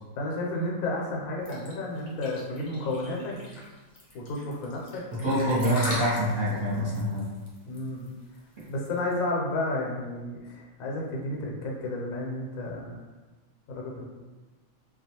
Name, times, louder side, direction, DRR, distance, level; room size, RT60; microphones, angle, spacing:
voice 1, 0.2-3.6 4.1-5.0 7.7-8.1 8.7-13.0 13.7-14.0, left 2 dB, 75° left, -1 dB, 1.0 m, -32 dB
sound 1, 1.5-9.1, left 1 dB, 45° left, 0.6 m, -38 dB
voice 2, 5.1-7.3, equal, 45° right, -10 dB, 0.8 m, -26 dB
2.3 x 2.3 x 2.8 m, 1.2 s
omnidirectional pair, 1.5 m